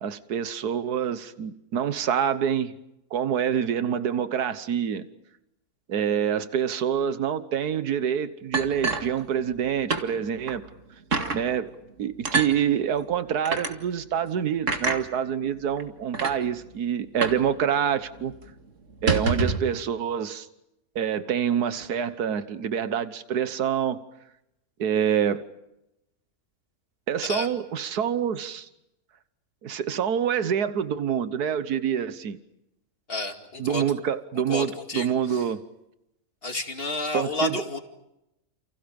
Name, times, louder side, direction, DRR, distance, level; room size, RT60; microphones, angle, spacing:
voice 1, 0.0-2.7 3.1-5.1 5.9-10.6 11.3-11.7 12.0-18.3 19.0-20.5 20.9-24.0 24.8-25.4 27.1-28.7 29.6-32.4 33.6-35.6 37.1-37.6, right 8 dB, 85° right, 12 dB, 1.7 m, -26 dB
sound 1, 8.5-9.6 9.9-10.1 10.5-10.6 11.1-11.4 12.2-12.5 13.4-13.7 14.7-15.0 15.8-15.9 16.1-16.4 17.2-17.5 17.7-17.8 18.2-18.4 18.9-19.7, right 3 dB, 55° right, 2.4 m, -26 dB
voice 2, 33.1-33.8 34.5-35.5 36.4-37.8, left 2 dB, 40° left, 4 dB, 2.6 m, -31 dB
30.0 x 29.5 x 5.3 m, 0.86 s
omnidirectional pair, 1.6 m